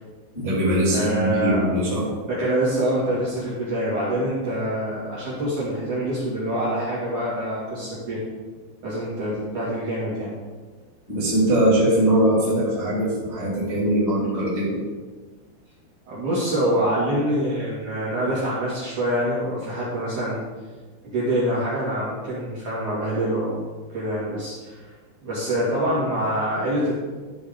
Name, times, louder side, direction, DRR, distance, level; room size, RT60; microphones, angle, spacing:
voice 1, 0.3-2.1 11.1-14.8, right 1 dB, 10° right, -6 dB, 2.7 m, -21 dB
voice 2, 0.9-1.6 2.2-8.2 8.8-10.3 16.1-20.4 21.0-23.6 23.9-24.8 25.2-26.9, right 1 dB, 50° right, -9 dB, 3.0 m, -25 dB
12.5 x 5.2 x 5.1 m, 1.3 s
omnidirectional pair, 5.5 m